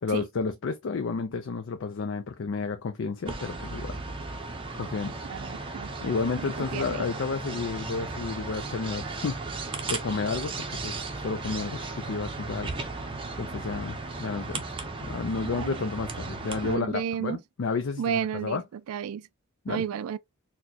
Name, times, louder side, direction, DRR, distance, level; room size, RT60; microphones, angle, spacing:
voice 1, 0.0-4.0 4.7-5.2 6.0-12.7 13.4-14.6 15.0-18.6 19.7-19.8, left 4 dB, 60° left, 0.4 m, -31 dB
sound 1, 3.3-16.8, right 3 dB, 25° right, 0.6 m, -35 dB
voice 2, 5.3-5.9 6.6-7.0 15.4-15.8 16.6-17.4 18.0-18.6 18.9-19.2 19.7-20.2, right 8 dB, 90° right, 0.3 m, -32 dB
4.2 x 2.2 x 2.7 m
head